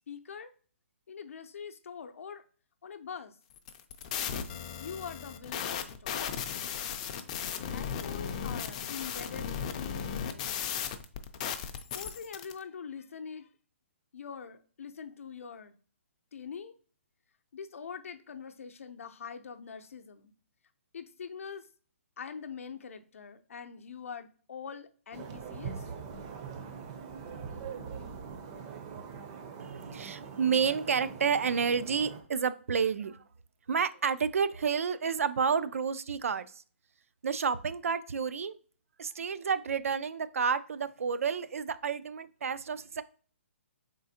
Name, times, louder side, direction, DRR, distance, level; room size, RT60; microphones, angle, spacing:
voice 1, 0.1-0.5 1.1-2.4 2.8-3.4 4.8-6.2 7.7-10.5 11.9-13.5 14.1-15.7 16.3-16.7 17.5-20.3 20.9-21.7 22.2-25.8, left 6 dB, 75° left, 0.6 m, -44 dB
sound 1, 3.6-12.5, left 8 dB, 30° left, 0.3 m, -36 dB
sound 2, 25.1-32.2, right 6 dB, 25° right, 0.5 m, -42 dB
voice 2, 29.6-33.2 33.7-36.6 37.2-38.6 39.0-43.0, right 6 dB, 85° right, 0.4 m, -30 dB
4.1 x 3.7 x 2.7 m
hypercardioid pair, 160°, 7 cm